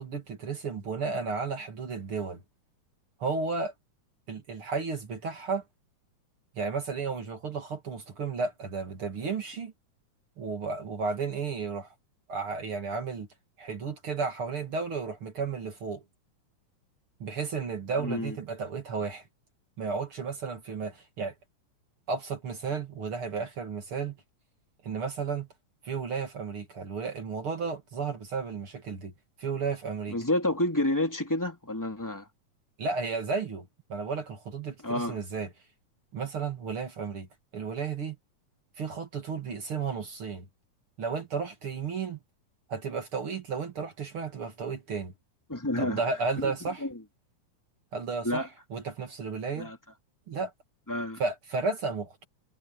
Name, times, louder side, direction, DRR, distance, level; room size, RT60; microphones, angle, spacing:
voice 1, 0.0-2.4 3.2-3.7 4.3-5.6 6.5-9.7 10.4-11.9 12.3-13.3 13.6-16.0 17.2-19.2 19.8-21.3 22.1-24.2 24.8-25.5 25.8-29.1 29.4-30.2 32.8-35.5 36.1-37.3 37.5-38.2 38.8-40.5 41.0-42.2 42.7-45.1 45.8-46.9 47.9-48.4 48.7-49.7 50.3-50.5 51.2-52.3, right 5 dB, 45° right, 2.8 m, -33 dB
voice 2, 18.0-18.4 30.1-32.3 34.8-35.2 45.5-46.0 46.4-46.9 48.2-48.5 49.6-49.8 50.9-51.2, left 1 dB, 5° left, 2.8 m, -29 dB
omnidirectional pair, 3.7 m